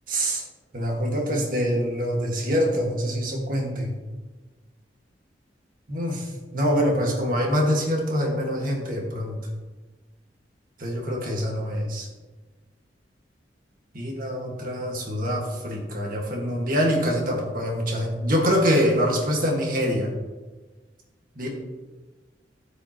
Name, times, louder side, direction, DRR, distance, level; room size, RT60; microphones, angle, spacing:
voice 1, 0.1-0.4 0.7-3.9 5.9-9.4 10.8-12.1 13.9-20.1 21.4-21.5, equal, 50° right, 0 dB, 1.7 m, -25 dB
13.5 x 5.3 x 2.9 m, 1.3 s
head